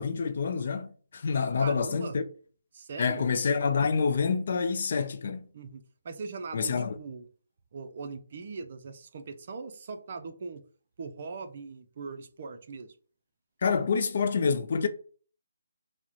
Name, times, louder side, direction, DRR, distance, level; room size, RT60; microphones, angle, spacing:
voice 1, 0.0-2.2 3.0-5.5 6.5-7.0 13.6-14.9, left 5 dB, 45° left, 0.4 m, -27 dB
voice 2, 1.6-2.2 2.7-3.2 5.5-7.3 7.7-10.6 11.0-12.9, right 4 dB, 40° right, 0.5 m, -40 dB
4.7 x 2.1 x 2.8 m
hypercardioid pair, 170°, 0 cm